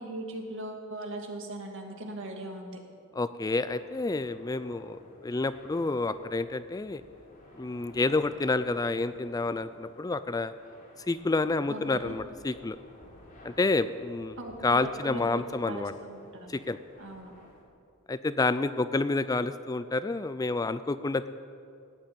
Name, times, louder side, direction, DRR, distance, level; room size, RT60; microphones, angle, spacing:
voice 1, 0.0-2.8 11.7-12.2 14.4-16.6 17.0-17.3, right 1 dB, 60° right, 2 dB, 2.3 m, -39 dB
voice 2, 3.1-7.0 7.6-10.5 11.1-12.8 13.4-14.4 14.6-15.9 16.5-16.8 18.1-21.3, left 3 dB, 15° left, 13 dB, 0.3 m, -29 dB
sound 1, 3.6-17.6, equal, 40° left, 3.6 m, -53 dB
16.5 x 9.3 x 8.8 m, 2.4 s
head